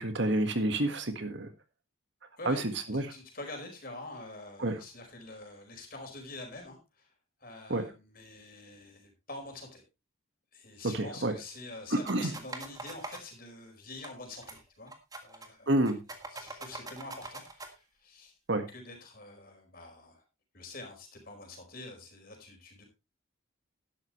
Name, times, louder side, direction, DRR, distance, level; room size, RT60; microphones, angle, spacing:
voice 1, 0.0-1.5 2.4-3.1 4.6-4.8 7.7-7.8 10.9-11.3 11.9-12.3 15.7-16.0 18.5-18.6, right 1 dB, 60° right, 8 dB, 1.7 m, -29 dB
voice 2, 2.9-7.1 7.4-9.8 10.5-14.9 15.2-15.8 16.3-18.3 18.7-20.2 20.5-22.8, left 2 dB, 45° left, 3 dB, 4.9 m, -46 dB
sound 1, 12.1-13.2 14.0-14.1 14.4-14.6 14.9-15.5 15.8-17.7, right 2 dB, 20° right, 1.7 m, -43 dB
12.0 x 12.0 x 3.2 m, 0.26 s
head